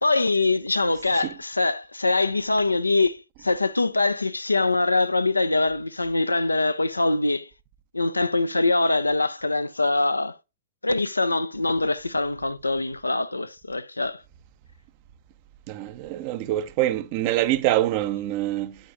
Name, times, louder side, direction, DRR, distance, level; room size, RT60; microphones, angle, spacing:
voice 1, 0.0-7.5 7.9-10.4 10.8-14.2, left 2 dB, 90° left, 0.5 m, -23 dB
voice 2, 15.7-18.8, right 14 dB, 45° right, 0.7 m, -25 dB
8.6 x 7.4 x 2.5 m
figure-of-eight pair, 105°, 0 cm